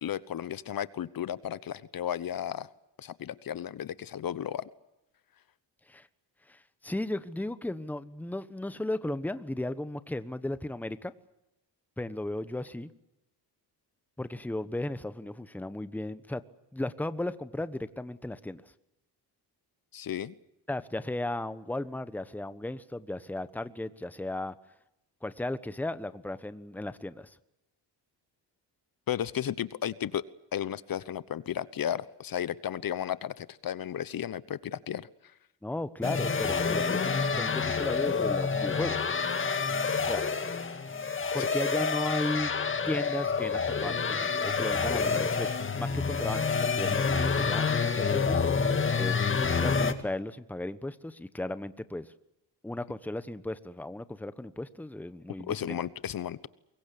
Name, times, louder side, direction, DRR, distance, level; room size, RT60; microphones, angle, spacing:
voice 1, 0.0-2.7 3.0-4.7 19.9-20.3 29.1-30.2 30.5-35.1 41.3-41.5 55.5-56.5, left 10 dB, 55° left, 17 dB, 1.0 m, -34 dB
voice 2, 6.5-11.1 12.0-12.9 14.2-16.4 16.7-18.7 20.7-24.5 25.2-27.4 35.6-39.0 40.1-40.3 41.3-42.5 42.9-48.4 48.7-52.1 52.6-55.8, left 1 dB, 5° left, 13 dB, 1.1 m, -35 dB
sound 1, 36.0-49.9, left 5 dB, 30° left, 2.1 m, -28 dB
24.5 x 22.0 x 8.5 m, 0.89 s
cardioid pair, 120°, 42 cm